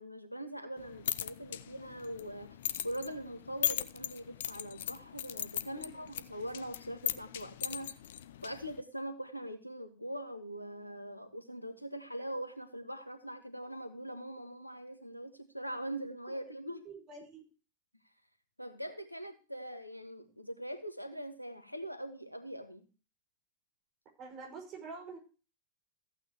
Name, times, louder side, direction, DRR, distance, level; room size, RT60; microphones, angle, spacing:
voice 1, 0.0-7.9 8.4-16.9 18.6-22.9, right 1 dB, 90° left, 9 dB, 1.5 m, -42 dB
sound 1, 0.8-8.8, left 11 dB, 60° left, 0.6 m, -39 dB
voice 2, 16.7-17.4 24.2-25.2, right 4 dB, 35° right, 0 dB, 5.6 m, -47 dB
14.5 x 8.7 x 3.0 m, 0.34 s
figure-of-eight pair, 90°, 0 cm